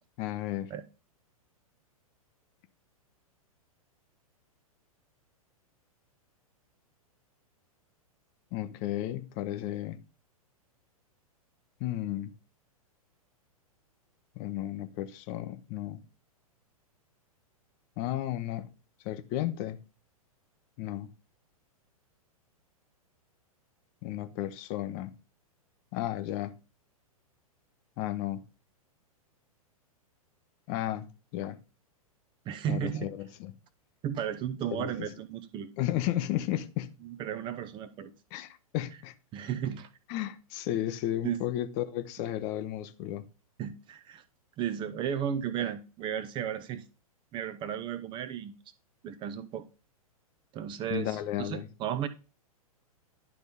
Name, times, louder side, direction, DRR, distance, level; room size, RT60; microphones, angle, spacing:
voice 1, 0.2-0.7 8.5-10.0 11.8-12.3 14.4-16.0 18.0-18.7 19.0-19.8 20.8-21.1 24.0-25.1 25.9-26.5 28.0-28.4 30.7-31.6 32.7-33.6 34.7-35.1 35.8-36.9 38.3-39.1 40.1-43.3 50.9-51.7, left 13 dB, 35° left, 0.6 m, -33 dB
voice 2, 32.5-33.1 34.0-35.7 37.0-38.1 39.3-39.9 41.2-41.4 43.6-44.2 44.6-46.8 47.3-48.5 49.0-49.7 50.5-52.1, right 9 dB, 25° right, 0.6 m, -34 dB
11.0 x 3.9 x 3.5 m
figure-of-eight pair, 105°, 19 cm